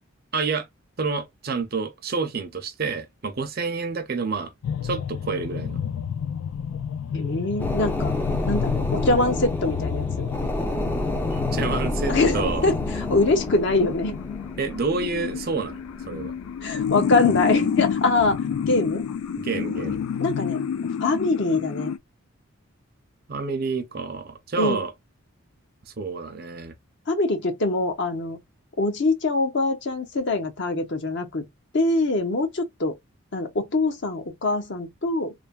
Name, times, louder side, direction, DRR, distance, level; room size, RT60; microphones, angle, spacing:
voice 1, 0.3-0.7 1.0-4.5 4.8-5.8 11.3-12.6 14.6-15.8 16.1-16.3 19.4-20.0 23.3-24.9 26.0-26.7, right 4 dB, 45° right, 0.5 m, -28 dB
sound 1, 4.6-22.0, left 7 dB, 75° left, 0.3 m, -29 dB
voice 2, 7.1-8.2 8.5-10.3 12.1-14.2 16.6-18.4 18.7-19.0 20.2-20.6 21.0-21.9 24.6-24.8 27.1-28.4 28.8-31.5 31.7-33.0 33.3-35.3, left 2 dB, 55° left, 0.7 m, -24 dB
sound 2, 7.6-17.6 18.0-18.1, left 1 dB, 10° left, 0.4 m, -30 dB
3.2 x 2.1 x 2.3 m
head